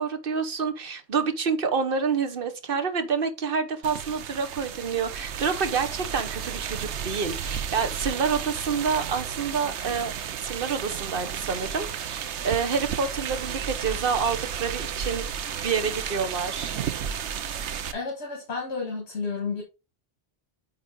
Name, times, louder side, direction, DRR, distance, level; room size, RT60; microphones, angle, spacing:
voice 1, 0.0-10.1 10.4-15.3 15.6-16.7, right 5 dB, 55° right, 1.2 m, -28 dB
sound 1, 3.8-17.9, right 8 dB, 85° right, 1.0 m, -33 dB
voice 2, 17.9-19.6, left 4 dB, 70° left, 2.1 m, -31 dB
9.0 x 4.2 x 3.8 m
omnidirectional pair, 1.1 m